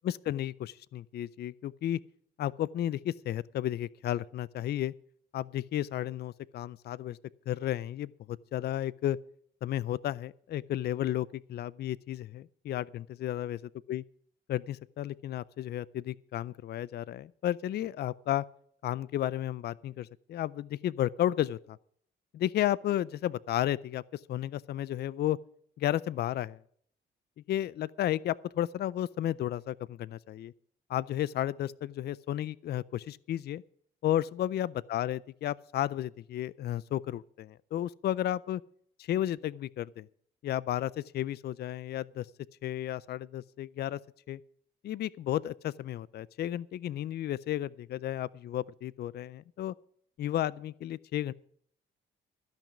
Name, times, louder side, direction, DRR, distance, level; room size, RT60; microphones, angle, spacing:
voice 1, 0.0-2.0 2.4-4.9 5.3-7.2 7.5-9.2 9.6-13.6 13.9-14.0 14.5-18.4 18.8-21.8 22.3-25.4 25.8-26.6 27.5-30.5 30.9-33.6 34.0-38.6 39.0-40.1 40.4-42.3 42.6-44.0 44.3-44.4 44.8-49.7 50.2-51.3, left 12 dB, 55° left, 0.4 m, -33 dB
13.0 x 6.0 x 9.7 m
cardioid pair, 90°, 20 cm